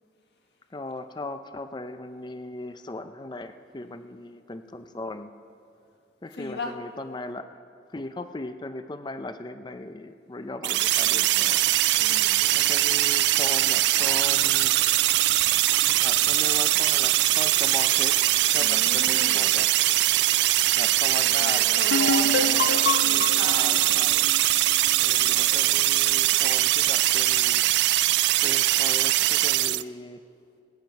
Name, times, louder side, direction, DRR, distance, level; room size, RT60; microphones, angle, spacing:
voice 1, 0.7-5.3 6.2-7.6 7.9-11.6 12.5-14.8 16.0-18.2 18.5-19.7 20.7-22.9 23.4-24.2 25.0-27.6 28.4-30.2, left 2 dB, 25° left, 9 dB, 0.5 m, -38 dB
voice 2, 6.4-6.7 11.9-12.4 18.6-19.4 21.2-24.1 25.3-25.8, left 2 dB, 70° left, 3 dB, 1.5 m, -36 dB
sound 1, 10.6-29.8, right 16 dB, 75° right, 0.3 m, -22 dB
Water tap faucet / Liquid, 11.3-22.9, right 4 dB, 40° right, 1.4 m, -45 dB
sound 2, 21.9-25.5, left 4 dB, 90° left, 0.5 m, -28 dB
20.5 x 9.7 x 5.3 m, 2.4 s
head